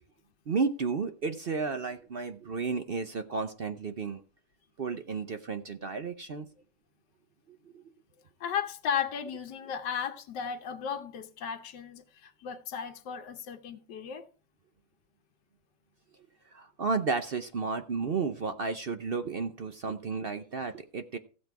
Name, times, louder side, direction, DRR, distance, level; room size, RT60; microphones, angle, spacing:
voice 1, 0.5-4.2 4.8-6.5 7.5-7.8 16.5-21.2, right 4 dB, 55° right, 0.6 m, -32 dB
voice 2, 8.4-14.3, left 7 dB, 85° left, 1.5 m, -35 dB
15.5 x 7.5 x 4.6 m
omnidirectional pair, 1.8 m